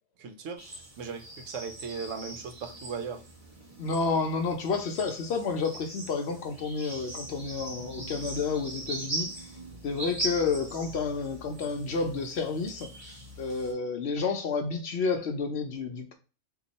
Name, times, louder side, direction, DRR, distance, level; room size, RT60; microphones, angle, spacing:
voice 1, 0.2-0.6 1.0-3.2, right 5 dB, 75° right, 1.0 m, -37 dB
sound 1, 0.6-13.7, right 2 dB, 30° right, 0.9 m, -40 dB
voice 2, 3.8-9.3 9.8-12.9 13.4-16.1, left 4 dB, 65° left, 0.8 m, -30 dB
2.8 x 2.2 x 3.9 m
omnidirectional pair, 1.4 m